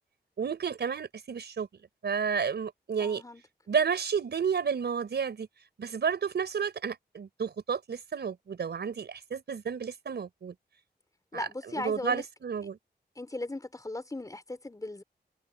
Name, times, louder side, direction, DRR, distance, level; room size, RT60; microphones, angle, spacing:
voice 1, 0.4-1.7 2.0-3.2 3.7-5.5 5.8-10.5 11.3-12.8, right 6 dB, 80° right, 5.1 m, -31 dB
voice 2, 3.0-3.4 11.3-12.2 13.2-15.0, left 2 dB, 20° left, 4.5 m, -37 dB
wide cardioid pair, 125°, 17 cm